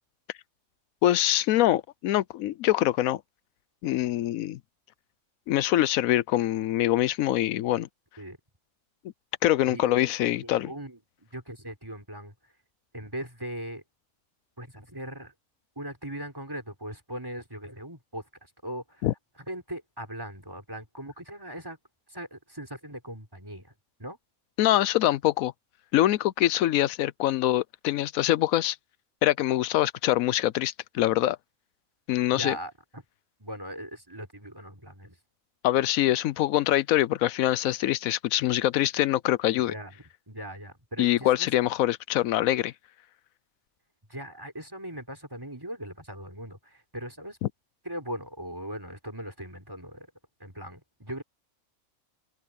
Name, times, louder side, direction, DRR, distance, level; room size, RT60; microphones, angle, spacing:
voice 1, 1.0-3.2 3.8-4.6 5.5-7.9 9.4-10.7 19.0-19.1 24.6-25.5 25.9-28.8 29.2-31.4 32.1-32.6 35.6-39.7 41.0-42.7 47.4-47.5, left 14 dB, 85° left, 1.0 m, -24 dB
voice 2, 9.7-10.1 10.4-12.3 12.9-13.8 14.6-15.3 15.8-19.1 19.5-21.8 22.1-23.7 24.0-24.2 32.3-33.0 33.4-35.2 39.7-40.0 40.3-41.5 44.1-47.4 47.8-50.1 50.4-51.2, right 1 dB, 15° right, 4.5 m, -39 dB
omnidirectional pair, 1.4 m